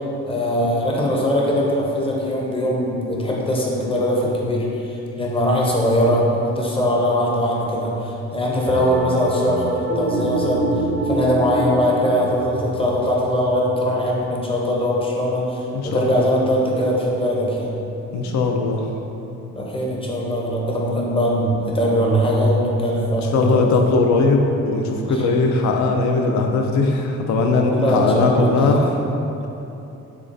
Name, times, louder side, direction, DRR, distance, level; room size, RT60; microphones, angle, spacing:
voice 1, 0.3-4.8 5.2-17.7 19.5-23.7 25.1-25.3 27.6-28.7, equal, 20° left, -3 dB, 0.6 m, -21 dB
sound 1, 8.7-13.9, right 2 dB, 75° right, 0.5 m, -27 dB
voice 2, 15.7-16.2 18.1-18.9 23.3-28.9, left 3 dB, 70° left, 2 dB, 0.5 m, -19 dB
3.5 x 3.2 x 2.5 m, 2.9 s
cardioid pair, 90°, 30 cm